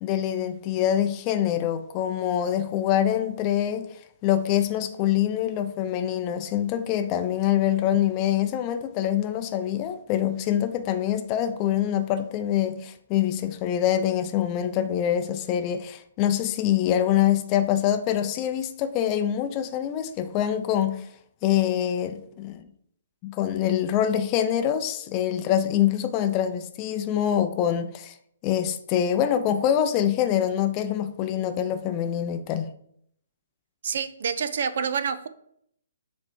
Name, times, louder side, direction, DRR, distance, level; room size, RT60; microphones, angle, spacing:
voice 1, 0.0-3.9 4.2-21.1 21.4-22.6 23.2-28.1 28.4-32.7, left 10 dB, 30° left, 0.6 m, -25 dB
voice 2, 33.8-35.3, right 6 dB, 55° right, 0.5 m, -27 dB
7.3 x 3.1 x 4.8 m
figure-of-eight pair, 130°, 0 cm